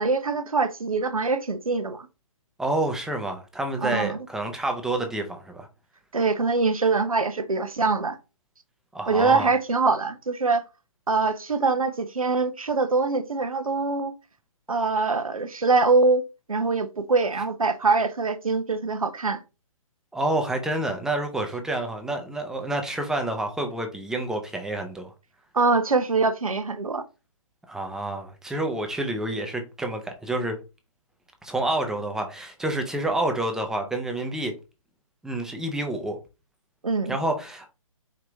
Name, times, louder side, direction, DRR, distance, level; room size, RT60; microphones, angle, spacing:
voice 1, 0.0-2.1 3.8-4.2 6.1-8.2 9.1-10.6 11.1-14.1 14.7-16.2 16.5-19.4 25.5-27.0 36.8-37.2, right 4 dB, 80° right, 0.8 m, -23 dB
voice 2, 2.6-5.7 8.9-9.5 20.1-25.1 27.7-30.6 31.4-34.5 35.2-36.2 37.1-37.7, right 1 dB, 5° right, 0.6 m, -28 dB
5.0 x 2.8 x 3.4 m
figure-of-eight pair, 130°, 18 cm